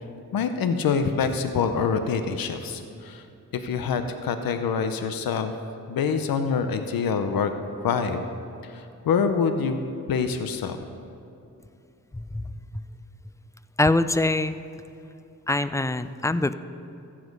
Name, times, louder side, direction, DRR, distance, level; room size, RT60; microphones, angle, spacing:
voice 1, 0.3-3.2 3.5-5.5 5.9-7.5 7.8-8.2 8.6-9.8 10.1-10.8, left 6 dB, 90° left, 8 dB, 0.7 m, -25 dB
voice 2, 12.1-12.4 13.8-14.6 15.5-16.5, left 2 dB, 10° left, 13 dB, 0.4 m, -23 dB
14.5 x 7.4 x 5.3 m, 2.7 s
cardioid pair, 65°, 34 cm